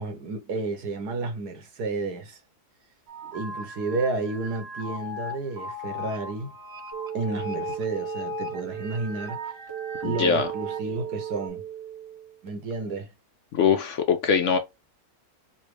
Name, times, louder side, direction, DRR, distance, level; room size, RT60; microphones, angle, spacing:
voice 1, 0.0-2.4 3.2-6.5 7.1-9.4 10.0-11.6 12.4-13.1, right 3 dB, 80° right, 1.6 m, -31 dB
sound 1, 3.1-11.5, left 2 dB, 50° right, 0.9 m, -38 dB
sound 2, 6.9-12.5, right 10 dB, 20° left, 1.2 m, -36 dB
voice 2, 10.0-10.5 13.5-14.6, left 6 dB, 65° left, 0.8 m, -22 dB
4.1 x 2.5 x 3.0 m
omnidirectional pair, 1.6 m